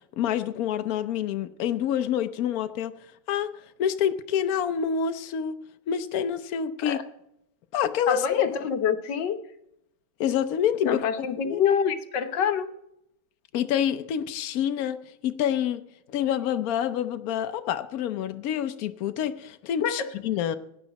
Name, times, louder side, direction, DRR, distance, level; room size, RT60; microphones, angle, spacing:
voice 1, 0.0-5.6 5.9-7.0 7.7-8.3 10.2-11.6 13.5-15.8 16.1-20.6, left 9 dB, 90° left, 0.7 m, -27 dB
voice 2, 8.1-9.4 10.8-12.7 19.8-20.1, left 7 dB, 60° left, 1.5 m, -26 dB
17.0 x 10.0 x 4.1 m
omnidirectional pair, 2.4 m